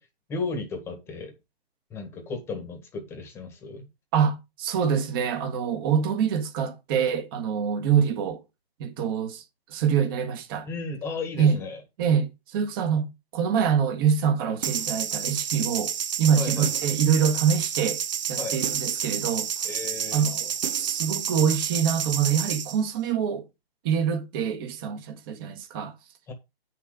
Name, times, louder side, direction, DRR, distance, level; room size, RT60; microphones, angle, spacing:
voice 1, 0.3-1.3 1.9-3.9 10.7-11.8 16.4-16.7 18.4-18.6 19.6-20.2 26.3-26.4, left 3 dB, 10° left, 1.8 m, -34 dB
voice 2, 4.1-8.4 8.8-9.4 9.7-10.7 11.4-11.6 12.0-18.0 18.3-19.7 20.1-20.5 20.8-23.4 23.8-25.9, right 7 dB, 20° right, 1.7 m, -25 dB
sound 1, 14.6-22.8, right 8 dB, 45° right, 1.1 m, -29 dB
9.9 x 6.7 x 5.0 m
hypercardioid pair, 165°, 31 cm